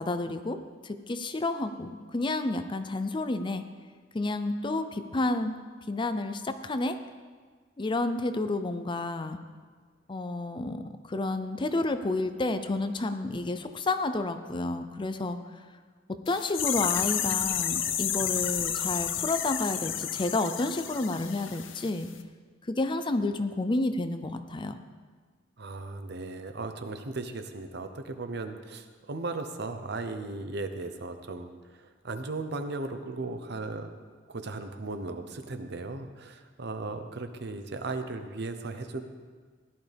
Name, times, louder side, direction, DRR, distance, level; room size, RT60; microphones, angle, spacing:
voice 1, 0.0-3.6 4.1-5.6 5.9-7.0 7.8-9.4 10.1-15.4 16.1-22.1 22.7-24.8, left 2 dB, 25° left, 9 dB, 0.5 m, -30 dB
sound 1, 16.3-21.9 22.2-22.3, left 9 dB, 80° left, 0.7 m, -31 dB
voice 2, 25.6-33.9 34.3-39.0, right 3 dB, 60° right, 8 dB, 0.8 m, -36 dB
15.5 x 11.0 x 3.5 m, 1.5 s
head